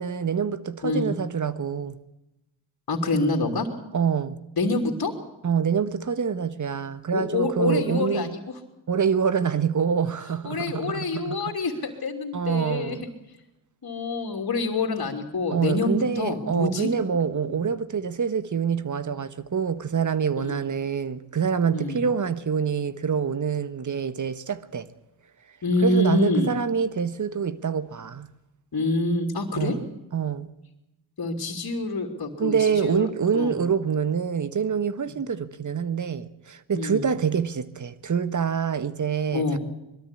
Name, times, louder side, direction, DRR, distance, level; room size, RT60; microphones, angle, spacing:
voice 1, 0.0-2.0 3.9-4.4 5.4-8.3 8.9-11.5 12.3-13.0 15.5-24.9 25.8-28.3 29.5-29.8 30.1-30.5 32.4-39.6, right 6 dB, 40° right, 1.4 m, -26 dB
voice 2, 2.9-3.7 4.6-5.1 7.1-8.4 10.4-13.0 13.8-16.9 17.4-17.6 20.4-20.6 21.7-22.0 25.6-26.5 28.7-29.8 31.2-33.1 33.3-33.5 35.1-35.2 36.7-37.0 39.3-39.6, left 3 dB, 50° left, 3.1 m, -26 dB
21.0 x 13.0 x 9.9 m
cardioid pair, 60°, 46 cm